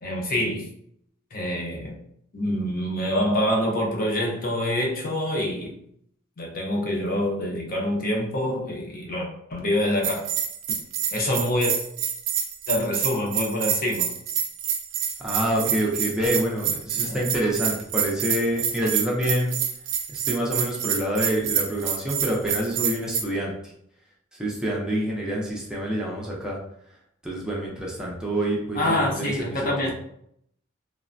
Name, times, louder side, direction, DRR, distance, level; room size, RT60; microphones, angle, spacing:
voice 1, 0.0-0.7 1.3-2.0 2.3-5.8 6.4-10.3 11.1-11.7 12.7-14.1 17.1-17.2 28.8-29.9, left 1 dB, 45° left, -1 dB, 0.6 m, -26 dB
Bell, 10.0-23.2, right 8 dB, 70° right, 0.4 m, -27 dB
voice 2, 15.2-19.5 20.1-23.5 24.3-26.6 27.2-29.9, right 1 dB, 5° right, -4 dB, 0.4 m, -27 dB
3.1 x 2.0 x 2.5 m, 0.72 s
head